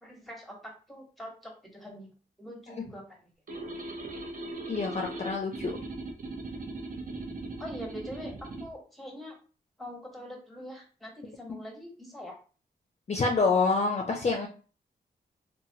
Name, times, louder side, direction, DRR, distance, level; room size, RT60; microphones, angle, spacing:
voice 1, 0.0-2.1 2.4-3.2 7.6-9.4 9.8-12.4, equal, ahead, 0 dB, 1.0 m, -43 dB
sound 1, 3.5-8.7, right 2 dB, 50° right, 0.7 m, -39 dB
voice 2, 4.7-5.8 13.1-14.5, left 4 dB, 40° left, 1 dB, 0.5 m, -27 dB
3.1 x 2.2 x 2.7 m, 0.37 s
wide cardioid pair, 95°, 18 cm